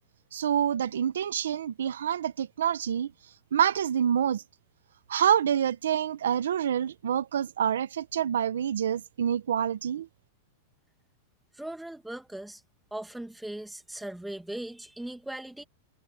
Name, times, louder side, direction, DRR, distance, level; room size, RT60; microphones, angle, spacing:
voice 1, 0.3-3.1 3.5-4.4 5.1-10.1, right 9 dB, 90° right, 0.9 m, -27 dB
voice 2, 11.5-12.6 12.9-15.6, right 1 dB, 5° right, 2.0 m, -39 dB
hypercardioid pair, 130°, 0 cm